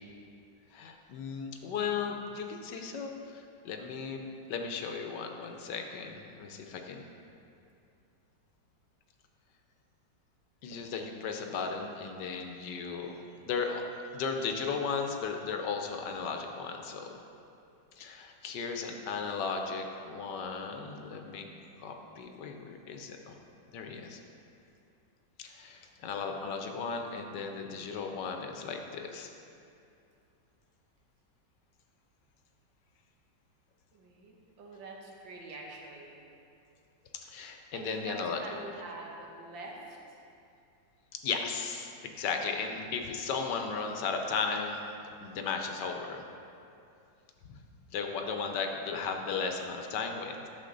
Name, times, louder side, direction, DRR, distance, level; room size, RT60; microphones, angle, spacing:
voice 1, 0.7-4.2 4.5-7.1 10.6-13.1 13.5-13.8 14.1-17.1 18.0-21.5 21.8-23.3 23.7-24.2 25.4-29.3 37.3-38.4 41.2-44.8 45.2-46.2 47.5-47.6 47.9-50.5, left 5 dB, 70° left, 4 dB, 1.3 m, -35 dB
voice 2, 33.9-36.2 37.7-40.2, right 2 dB, 90° right, -1 dB, 1.9 m, -45 dB
11.0 x 7.0 x 3.9 m, 2.6 s
omnidirectional pair, 2.0 m